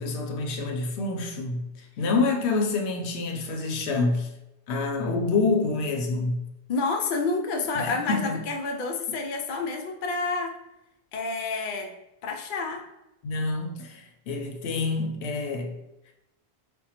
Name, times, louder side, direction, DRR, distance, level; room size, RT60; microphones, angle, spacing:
voice 1, 0.0-4.3 4.7-6.4 7.7-8.4 13.2-15.8, left 3 dB, 85° left, 0.9 m, -27 dB
voice 2, 6.7-10.5 11.1-11.9 12.2-12.8, left 3 dB, 60° left, 0.6 m, -29 dB
5.1 x 2.2 x 2.8 m
omnidirectional pair, 1.1 m